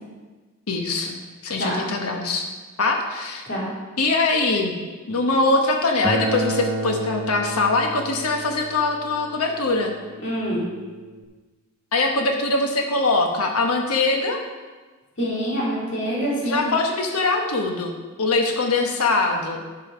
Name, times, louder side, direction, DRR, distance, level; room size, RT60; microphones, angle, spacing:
voice 1, 0.7-1.2 1.4-2.5 2.8-3.4 4.0-4.7 5.1-9.9 11.9-14.4 16.4-19.6, left 3 dB, 85° left, 2 dB, 1.2 m, -22 dB
Acoustic guitar, 6.0-11.2, right 2 dB, 10° right, 0.9 m, -31 dB
voice 2, 10.2-10.6 15.2-16.6, equal, 55° left, -6 dB, 2.8 m, -25 dB
11.5 x 5.5 x 5.1 m, 1.3 s
head